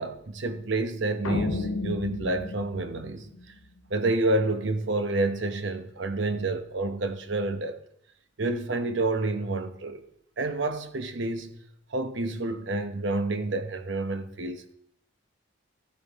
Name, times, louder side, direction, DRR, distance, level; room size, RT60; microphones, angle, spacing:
voice 1, 0.0-3.3 3.9-7.8 8.4-10.0 10.4-11.5 11.9-14.7, right 2 dB, 60° right, 0.9 m, -29 dB
sound 1, 1.2-3.7, left 3 dB, 80° left, 0.7 m, -32 dB
14.0 x 7.0 x 3.5 m
head